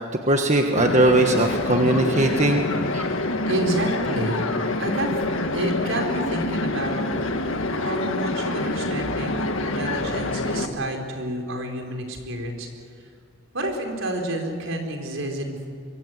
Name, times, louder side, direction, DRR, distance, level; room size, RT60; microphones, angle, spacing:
voice 1, 0.3-2.6 2.9-3.0, right 1 dB, 35° right, 4 dB, 1.4 m, -19 dB
sound 1, 0.7-10.7, left 2 dB, 80° left, 1.8 m, -26 dB
voice 2, 3.5-4.4 4.8-5.1 5.5-7.1 7.4-12.7 13.5-15.6, right 1 dB, 75° right, 3 dB, 4.6 m, -29 dB
24.5 x 24.0 x 8.0 m, 2.1 s
head